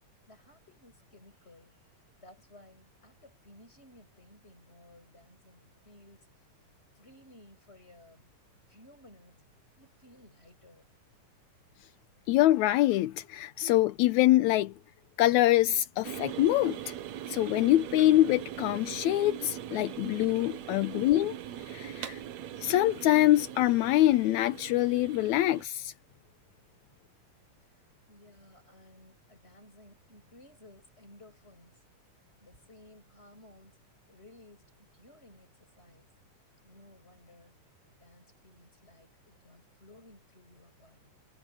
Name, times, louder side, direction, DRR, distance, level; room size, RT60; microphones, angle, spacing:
voice 1, 0.3-1.8 2.2-6.5 7.0-8.3 8.7-9.4 9.8-10.9 20.5-20.8 27.6-27.7 28.1-31.8 32.4-33.8 34.1-36.1 36.6-37.6 37.9-41.1, left 1 dB, 15° left, 7.8 m, -57 dB
voice 2, 12.3-14.7 15.2-16.9 17.3-21.3 21.6-22.2 22.6-25.9, left 15 dB, 80° left, 1.8 m, -25 dB
sound 1, 16.0-25.6, right 10 dB, 65° right, 2.2 m, -41 dB
omnidirectional pair, 3.8 m